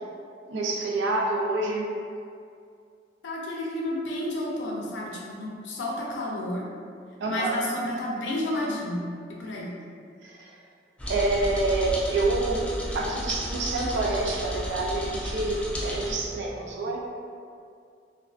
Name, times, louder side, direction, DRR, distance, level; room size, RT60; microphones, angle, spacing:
voice 1, 0.5-1.8 7.2-7.6 10.2-10.5 11.1-12.6 12.9-15.6 15.8-17.0, right 2 dB, 80° right, -1 dB, 0.4 m, -27 dB
voice 2, 3.2-6.6 7.3-9.7, left 1 dB, 85° left, -3 dB, 0.5 m, -31 dB
sound 1, 11.0-16.1, equal, 5° left, 0.3 m, -33 dB
2.3 x 2.3 x 2.3 m, 2.3 s
head